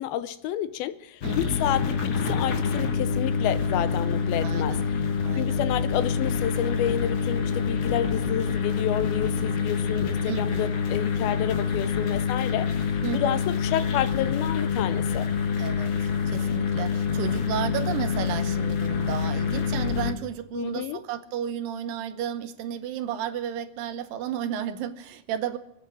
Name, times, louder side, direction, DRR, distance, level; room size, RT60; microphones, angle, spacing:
voice 1, 0.0-4.8 5.4-12.7 13.1-15.3 20.5-21.0, left 11 dB, 80° left, 13 dB, 2.6 m, -29 dB
sound 1, 1.2-20.1, left 6 dB, 60° left, 1.3 m, -26 dB
voice 2, 1.2-1.5 4.4-4.8 5.2-5.6 10.3-10.7 13.0-13.4 15.6-25.6, right 9 dB, 75° right, 9 dB, 2.5 m, -33 dB
24.0 x 9.0 x 6.2 m, 0.88 s
omnidirectional pair, 4.3 m